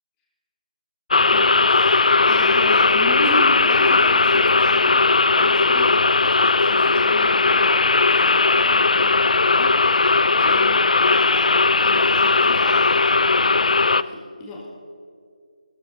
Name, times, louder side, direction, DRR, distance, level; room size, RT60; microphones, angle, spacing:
sound 1, 1.1-14.0, left 3 dB, 65° left, 0.4 m, -17 dB
voice 1, 1.3-5.1 5.4-14.7, left 1 dB, 10° left, -2 dB, 1.7 m, -35 dB
16.5 x 13.0 x 4.1 m, 2.3 s
figure-of-eight pair, 165°, 4 cm